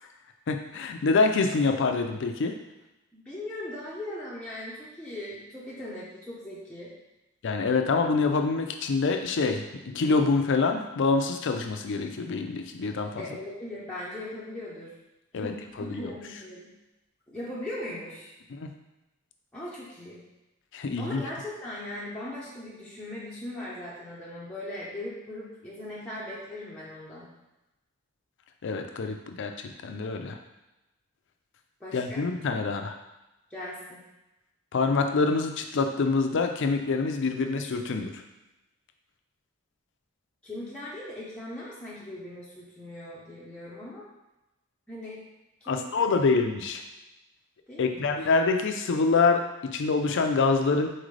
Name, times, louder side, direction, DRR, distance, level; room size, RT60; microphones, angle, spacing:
voice 1, 0.5-2.6 7.4-9.6 9.9-13.2 15.3-15.5 15.8-16.0 18.5-18.7 20.7-21.2 28.6-29.5 29.8-30.4 31.9-32.9 34.7-38.1 45.7-46.8 47.8-50.9, left 4 dB, 60° left, 5 dB, 0.5 m, -26 dB
voice 2, 3.1-6.9 13.2-14.9 15.4-16.7 17.3-18.3 19.5-20.2 21.0-27.3 31.8-32.2 33.5-34.0 40.4-44.0 44.9-45.2 45.6-46.2 47.7-48.3, left 1 dB, 5° left, -8 dB, 0.7 m, -39 dB
4.3 x 3.8 x 3.2 m, 0.99 s
head